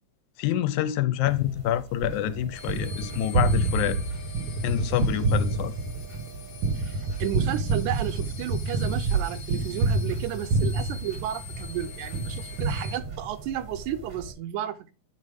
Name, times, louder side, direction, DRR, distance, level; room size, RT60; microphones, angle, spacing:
voice 1, 0.4-4.0 4.6-5.7, left 12 dB, 85° left, 2.0 m, -27 dB
sound 1, 1.2-14.3, right 2 dB, 45° right, 0.7 m, -44 dB
Gunshot gunfire, 2.0-11.7 12.1-13.5, right 3 dB, 70° right, 1.3 m, -28 dB
sound 2, 2.6-13.0, left 7 dB, 60° left, 1.5 m, -46 dB
voice 2, 6.8-14.9, right 12 dB, 85° right, 2.0 m, -33 dB
8.6 x 4.1 x 4.8 m
omnidirectional pair, 3.5 m